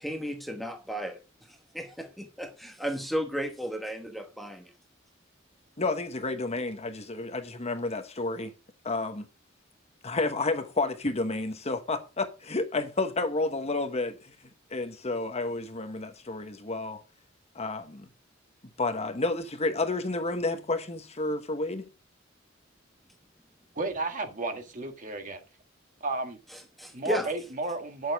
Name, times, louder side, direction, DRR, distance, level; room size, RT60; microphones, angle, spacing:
voice 1, 0.0-4.7 26.5-27.3, equal, ahead, 1.1 m, -34 dB
voice 2, 5.8-8.5 8.8-9.3 10.0-14.4 14.7-17.0 17.5-18.1 18.8-21.9, left 2 dB, 35° left, 1.1 m, -30 dB
voice 3, 23.8-25.4 26.0-26.4 26.9-28.1, right 2 dB, 40° right, 1.9 m, -32 dB
10.0 x 6.6 x 4.7 m
head